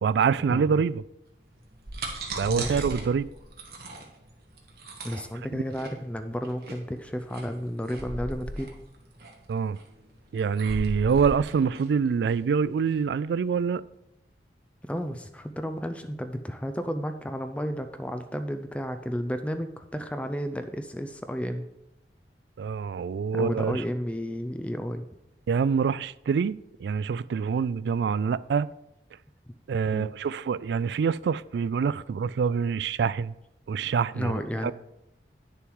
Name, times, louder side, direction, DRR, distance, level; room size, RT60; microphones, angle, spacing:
voice 1, 0.0-1.0 2.3-3.3 9.5-9.8 10.3-13.8 22.6-23.8 25.5-28.7 29.7-33.3 33.7-34.7, right 6 dB, 75° right, 0.3 m, -26 dB
sound 1, 1.6-13.0, right 2 dB, 60° right, 1.5 m, -38 dB
voice 2, 2.5-2.8 5.0-8.8 14.8-21.7 23.3-25.1 29.9-30.1 34.1-34.7, equal, 5° left, 0.4 m, -32 dB
9.2 x 6.9 x 4.7 m
head